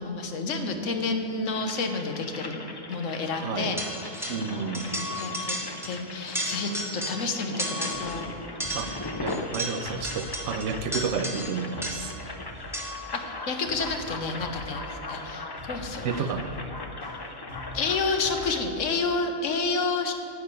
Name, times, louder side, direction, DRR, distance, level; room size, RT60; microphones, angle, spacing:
voice 1, 0.0-2.6 2.9-4.4 4.8-5.6 5.8-8.3 13.1-16.0 17.7-20.1, left 4 dB, 85° left, 5 dB, 1.3 m, -30 dB
sound 1, 1.5-18.6, left 2 dB, 25° left, 0.5 m, -39 dB
voice 2, 3.3-3.8 4.3-4.9 8.7-8.9 9.2-12.1 16.0-16.5, right 5 dB, 70° right, 9 dB, 1.0 m, -31 dB
sound 2, 3.8-4.5 4.7-6.0 6.3-7.3 7.6-8.2 8.6-12.2 12.7-13.1, equal, ahead, 1.0 m, -34 dB
sound 3, 7.9-19.0, left 1 dB, 60° left, 3.9 m, -43 dB
10.5 x 6.2 x 8.7 m, 2.5 s
omnidirectional pair, 1.3 m